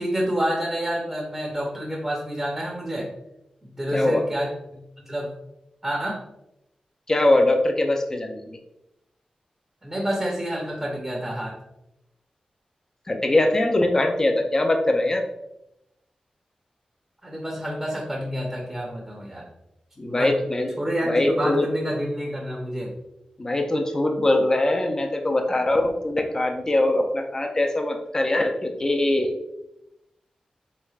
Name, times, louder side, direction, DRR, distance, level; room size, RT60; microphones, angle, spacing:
voice 1, 0.0-3.1 3.6-5.3 5.8-6.2 9.8-11.5 17.2-19.5 20.1-20.3 20.8-22.9, equal, 15° right, -2 dB, 0.6 m, -28 dB
voice 2, 3.9-4.2 7.1-8.4 13.1-15.2 20.0-20.7 21.0-21.7 23.4-29.4, left 1 dB, 25° left, 3 dB, 0.4 m, -22 dB
3.4 x 3.2 x 2.3 m, 0.88 s
wide cardioid pair, 115°, 2 cm